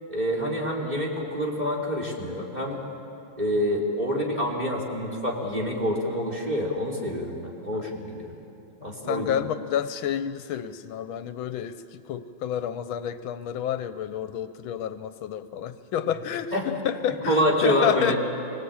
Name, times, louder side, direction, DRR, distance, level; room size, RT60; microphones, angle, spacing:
voice 1, 0.1-2.8 3.4-8.3 8.8-9.3 16.5-16.7 17.3-18.2, equal, 20° right, -2 dB, 3.3 m, -27 dB
voice 2, 8.8-18.2, left 9 dB, 80° left, 11 dB, 1.5 m, -30 dB
24.5 x 18.5 x 8.7 m, 2.8 s
omnidirectional pair, 2.2 m